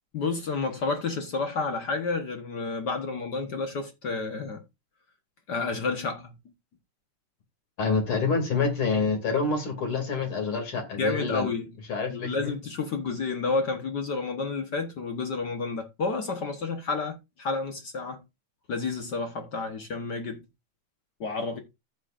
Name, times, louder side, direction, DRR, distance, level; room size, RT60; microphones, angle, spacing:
voice 1, 0.1-4.6 5.5-6.4 11.0-11.7 12.1-18.2 18.7-20.4 21.2-21.6, left 4 dB, 60° left, 1.1 m, -30 dB
voice 2, 7.8-11.5 11.9-12.5, left 4 dB, 45° left, 3.2 m, -27 dB
14.5 x 6.3 x 2.5 m
omnidirectional pair, 3.5 m